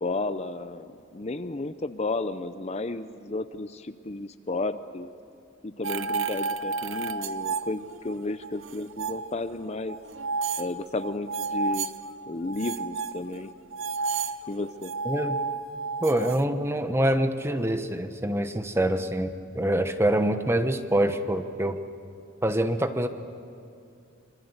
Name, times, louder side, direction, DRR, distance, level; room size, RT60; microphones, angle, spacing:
voice 1, 0.0-5.1 5.6-10.0 10.6-11.9 12.3-13.5 14.5-14.9, left 2 dB, 35° left, 11 dB, 0.6 m, -33 dB
sound 1, 5.8-8.1 8.4-9.3 9.9-12.0 12.5-16.4, right 4 dB, 80° right, 0.8 m, -31 dB
voice 2, 15.0-15.4 16.0-21.8 22.4-23.1, right 1 dB, 15° right, 8 dB, 1.1 m, -25 dB
26.0 x 24.5 x 8.1 m, 2.5 s
head